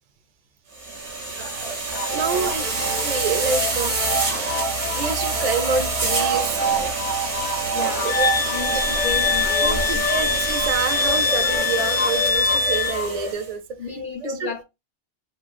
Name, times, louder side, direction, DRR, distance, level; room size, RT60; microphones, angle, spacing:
sound 1, 0.7-13.5, right 3 dB, 85° right, 1.2 m, -27 dB
voice 1, 1.1-4.0 4.9-6.6 8.0-8.3 8.9-9.0 9.6-13.6 14.2-14.5, right 5 dB, 60° right, 0.4 m, -28 dB
sound 2, 1.9-13.3, right 1 dB, 10° left, 0.4 m, -29 dB
voice 2, 7.7-8.2 8.5-10.0 13.8-14.6, left 5 dB, 55° left, 0.7 m, -32 dB
Wind instrument woodwind instrument, 8.1-13.0, left 5 dB, 80° left, 1.0 m, -23 dB
2.9 x 2.4 x 2.5 m
omnidirectional pair, 1.1 m